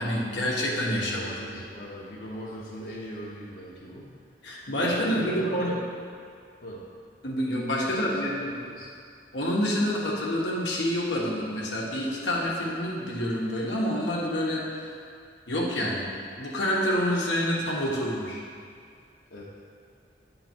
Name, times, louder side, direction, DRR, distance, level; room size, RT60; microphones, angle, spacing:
voice 1, 0.0-1.2 4.4-5.8 7.2-8.5 9.3-15.0 15.5-16.1 16.4-18.4, equal, 85° left, -4 dB, 1.3 m, -27 dB
voice 2, 1.0-4.1 4.8-5.8 6.6-6.8 7.7-8.9 19.3-19.4, equal, 55° left, -6 dB, 1.0 m, -39 dB
9.4 x 3.8 x 4.4 m, 2.2 s
head